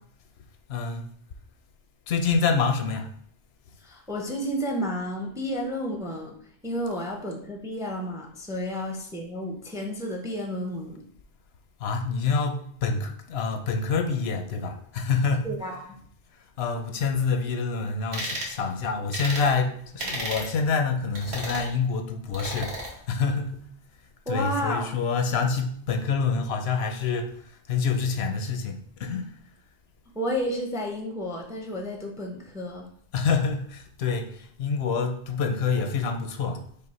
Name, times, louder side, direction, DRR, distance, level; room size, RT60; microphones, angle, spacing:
voice 1, 0.7-1.1 2.1-3.1 11.8-15.5 16.6-23.5 24.3-29.3 33.1-36.6, left 5 dB, 80° left, 6 dB, 0.8 m, -27 dB
voice 2, 3.8-6.3 6.6-11.0 15.4-16.0 24.3-24.9 30.1-32.9, equal, 5° right, 1 dB, 0.4 m, -31 dB
sound 1, 18.1-18.5 19.1-19.5 20.0-20.5 21.1-21.7 22.3-22.9, right 1 dB, 85° right, 1.3 m, -33 dB
5.4 x 2.1 x 4.2 m, 0.63 s
omnidirectional pair, 1.0 m